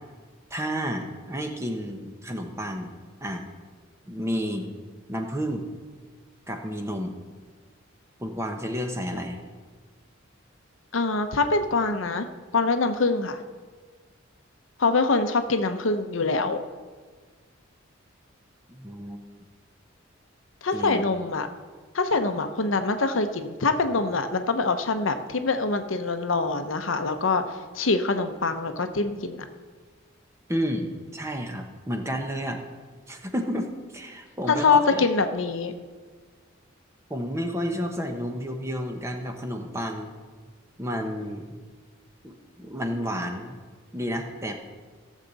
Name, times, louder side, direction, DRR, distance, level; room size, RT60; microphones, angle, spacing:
voice 1, 0.5-2.9 3.2-3.5 4.1-4.7 5.1-5.7 6.5-7.1 8.2-9.4 18.7-19.2 20.7-21.0 30.5-32.6 33.1-35.1 37.1-40.1 40.8-41.6 42.2-43.5 43.9-44.5, equal, 15° right, 4 dB, 0.9 m, -31 dB
voice 2, 10.9-12.3 12.5-13.4 14.8-16.6 20.6-21.5 21.9-27.4 27.7-29.5 34.5-35.7, left 3 dB, 70° left, 8 dB, 0.8 m, -24 dB
16.5 x 7.3 x 4.1 m, 1.5 s
head